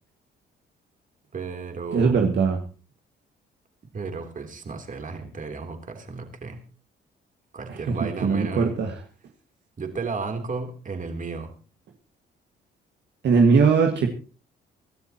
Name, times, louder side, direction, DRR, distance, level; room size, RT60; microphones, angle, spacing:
voice 1, 1.3-2.2 3.9-6.6 7.5-8.7 9.8-11.5, right 4 dB, 40° right, 5 dB, 3.4 m, -33 dB
voice 2, 1.9-2.6 7.7-9.0 13.2-14.1, right 5 dB, 65° right, 3 dB, 1.9 m, -20 dB
24.5 x 13.0 x 3.0 m, 0.35 s
cardioid pair, 90°, 20 cm